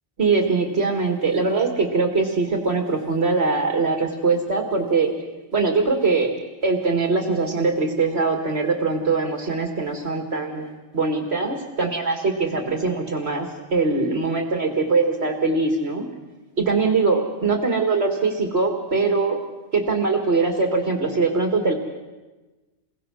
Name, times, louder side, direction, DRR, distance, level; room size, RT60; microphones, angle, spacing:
voice 1, 0.2-5.1 5.5-6.3 6.6-16.1 16.6-19.4 19.7-21.7, right 3 dB, 65° right, 4 dB, 2.3 m, -22 dB
28.0 x 22.5 x 6.3 m, 1.2 s
omnidirectional pair, 1.2 m